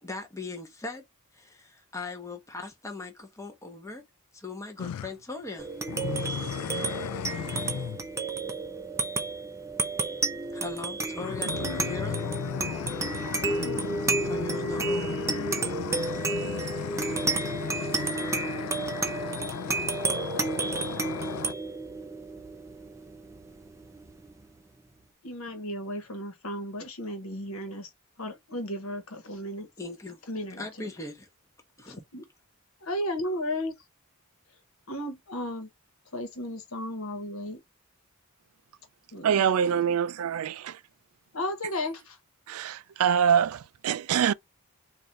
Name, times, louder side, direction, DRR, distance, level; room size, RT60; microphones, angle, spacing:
voice 1, 0.0-1.0 1.3-4.0 4.3-5.7 10.5-12.3 14.2-15.3 29.8-30.2 30.6-31.3 31.8-32.0, left 3 dB, 15° left, 0.9 m, -39 dB
sound 1, 4.8-5.1 5.9-8.1 11.1-21.5, left 8 dB, 90° left, 0.3 m, -35 dB
sound 2, 5.6-24.4, right 3 dB, 15° right, 0.6 m, -31 dB
voice 2, 25.2-27.9 28.2-29.7 30.3-30.9 31.9-32.2 32.8-33.7 34.9-35.7 36.1-37.6 39.1-40.0 41.3-42.2, left 1 dB, 70° left, 1.2 m, -34 dB
voice 3, 39.2-40.8 42.5-44.3, right 8 dB, 75° right, 0.3 m, -25 dB
4.0 x 2.5 x 3.1 m
head